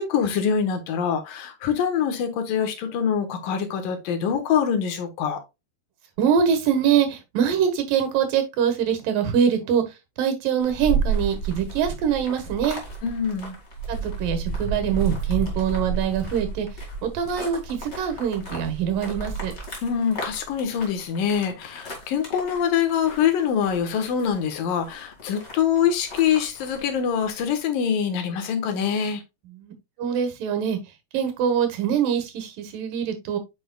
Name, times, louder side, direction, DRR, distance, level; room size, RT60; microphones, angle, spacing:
voice 1, 0.0-5.4 13.0-13.5 19.8-29.2, left 7 dB, 85° left, 3.0 m, -24 dB
voice 2, 6.2-9.8 10.2-12.8 13.9-16.7 17.0-19.5 29.5-29.7 30.0-30.8 31.1-33.4, right 8 dB, 80° right, 3.0 m, -24 dB
sound 1, 10.6-27.5, right 4 dB, 25° left, 2.0 m, -32 dB
8.6 x 5.4 x 2.3 m
omnidirectional pair, 3.9 m